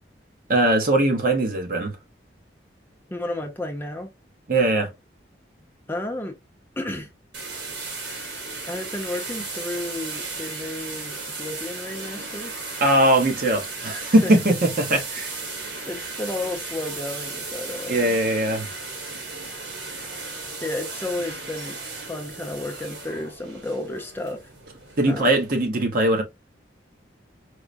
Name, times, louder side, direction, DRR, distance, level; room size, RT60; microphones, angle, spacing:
voice 1, 0.5-2.0 4.5-4.9 12.8-15.3 17.9-18.7 25.0-26.2, right 1 dB, 50° right, 0.8 m, -20 dB
voice 2, 3.1-4.1 5.9-6.4 6.8-7.1 8.7-12.5 14.2-14.3 15.9-18.1 20.6-21.8 22.1-24.5 25.1-25.3, left 1 dB, 10° left, 0.6 m, -32 dB
sound 1, 7.3-25.7, right 3 dB, 85° right, 1.4 m, -35 dB
4.6 x 2.1 x 2.5 m
head